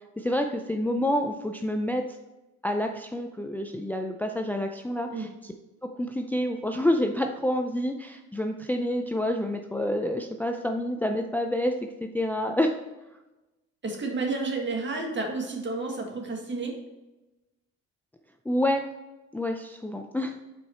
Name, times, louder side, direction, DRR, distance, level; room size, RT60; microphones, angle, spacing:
voice 1, 0.2-2.0 2.6-5.5 5.8-11.7 12.0-12.7 18.5-18.8 19.3-20.4, left 1 dB, 5° left, 4 dB, 0.4 m, -28 dB
voice 2, 13.8-16.7, right 3 dB, 40° right, 1 dB, 1.7 m, -31 dB
5.9 x 4.8 x 4.3 m, 1.0 s
cardioid pair, 90°, 30 cm